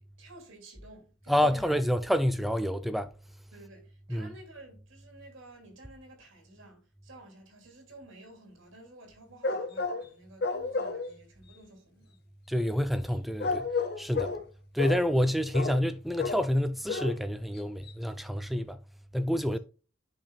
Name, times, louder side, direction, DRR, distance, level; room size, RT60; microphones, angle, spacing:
voice 1, 0.0-1.7 3.5-12.2 14.2-14.4 19.4-19.6, right 2 dB, 70° right, 2.6 m, -53 dB
voice 2, 1.3-3.1 4.1-4.3 12.5-13.7 14.0-14.3 14.7-18.8 19.1-19.6, equal, ahead, 0.4 m, -28 dB
sound 1, 9.4-10.1 10.4-11.1 13.4-14.4 14.8-15.1 15.5-15.8 16.2-16.5 16.9-17.2 17.6-17.7 17.9-18.0, left 4 dB, 50° left, 0.7 m, -31 dB
10.0 x 5.3 x 2.3 m
head